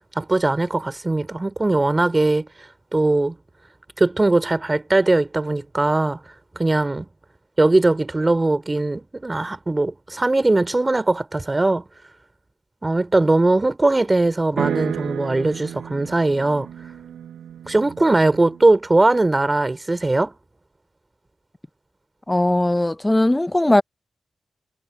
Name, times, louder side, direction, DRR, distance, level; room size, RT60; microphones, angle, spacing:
voice 1, 0.1-2.5 2.9-3.4 4.0-6.2 6.5-7.1 7.6-11.8 12.8-16.7 17.7-20.3, right 2 dB, 30° right, 3.3 m, -20 dB
sound 1, 14.6-18.7, right 9 dB, 90° right, 6.9 m, -32 dB
voice 2, 22.3-23.8, left 1 dB, 20° left, 0.5 m, -18 dB
supercardioid pair, 40°, 0 cm